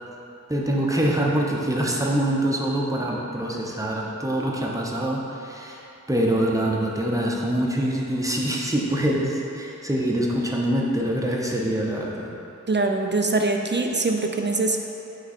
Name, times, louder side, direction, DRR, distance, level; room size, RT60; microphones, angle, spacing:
voice 1, 0.5-5.8 6.1-12.3, right 1 dB, 10° right, -3 dB, 0.8 m, -24 dB
voice 2, 12.7-14.8, right 3 dB, 35° right, 3 dB, 0.5 m, -23 dB
6.0 x 4.0 x 4.2 m, 3.0 s
wide cardioid pair, 45°, 31 cm